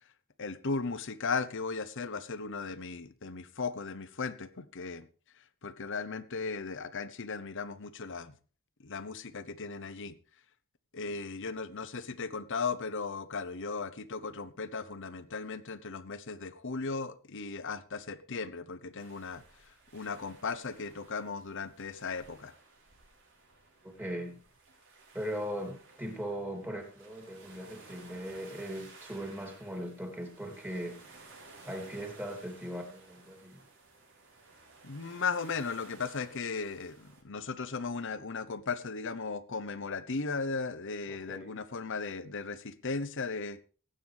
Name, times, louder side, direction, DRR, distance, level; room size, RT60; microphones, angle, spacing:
voice 1, 0.4-5.0 5.6-8.3 8.8-10.1 10.9-19.4 19.9-22.5 34.8-43.6, left 4 dB, 60° left, 1.0 m, -36 dB
sound 1, 19.0-37.2, right 3 dB, 60° right, 4.4 m, -56 dB
voice 2, 23.8-24.4 25.1-31.2 31.6-33.6 41.1-41.6, equal, 10° right, 3.0 m, -39 dB
19.5 x 9.2 x 3.5 m
head